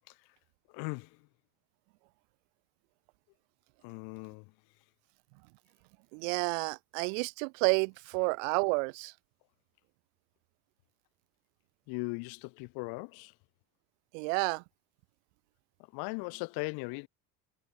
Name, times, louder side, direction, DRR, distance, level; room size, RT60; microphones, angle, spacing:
voice 1, 0.7-1.2 3.8-4.5 11.9-13.3 15.9-17.1, left 30 dB, 75° left, 1.5 m, -38 dB
voice 2, 6.1-9.1 14.1-14.6, right 36 dB, 85° right, 0.8 m, -30 dB
cardioid pair, 120°, 37 cm